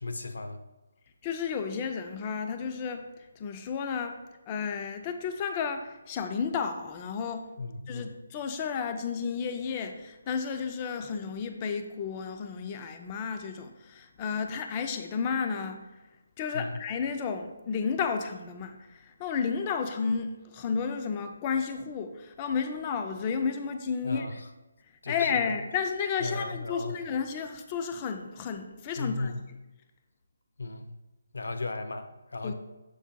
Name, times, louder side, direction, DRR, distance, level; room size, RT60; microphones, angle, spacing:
voice 1, 0.0-0.6 7.6-8.1 16.5-16.7 24.0-24.3 25.0-25.4 26.2-26.9 29.0-29.4 30.6-30.9 31.3-32.5, left 3 dB, 80° left, 7 dB, 0.6 m, -35 dB
voice 2, 1.2-4.2 4.5-7.5 7.9-15.8 16.4-24.3 25.1-29.3 32.4-32.5, left 6 dB, 20° left, 7 dB, 0.4 m, -32 dB
7.1 x 6.8 x 2.2 m, 1.1 s
hypercardioid pair, 170°, 0 cm